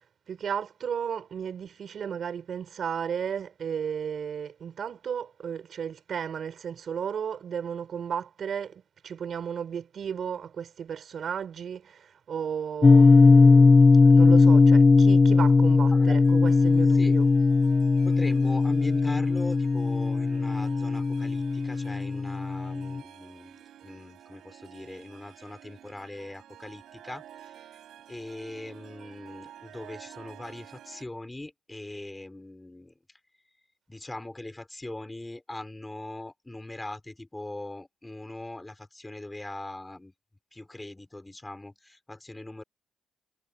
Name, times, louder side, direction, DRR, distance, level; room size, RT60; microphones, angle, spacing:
voice 1, 0.3-17.3, right 7 dB, 55° right, 5.1 m, -34 dB
sound 1, 12.8-23.0, left 4 dB, 30° left, 0.9 m, -19 dB
Harp, 16.2-31.0, right 11 dB, 75° right, 5.3 m, -51 dB
voice 2, 18.0-27.7 28.1-32.9 33.9-40.1 40.5-42.6, left 2 dB, 10° left, 5.6 m, -41 dB
cardioid pair, 90°, 0 cm